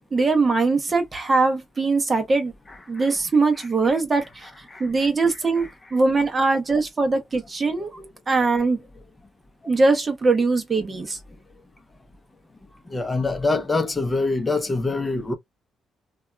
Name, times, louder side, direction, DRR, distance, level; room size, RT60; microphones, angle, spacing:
voice 1, 0.1-2.5 2.9-8.0 8.3-8.8 9.6-11.2, right 3 dB, 30° right, 0.8 m, -21 dB
voice 2, 12.9-15.3, left 3 dB, 20° left, 0.7 m, -25 dB
2.7 x 2.3 x 2.2 m
cardioid pair, 90°, 0 cm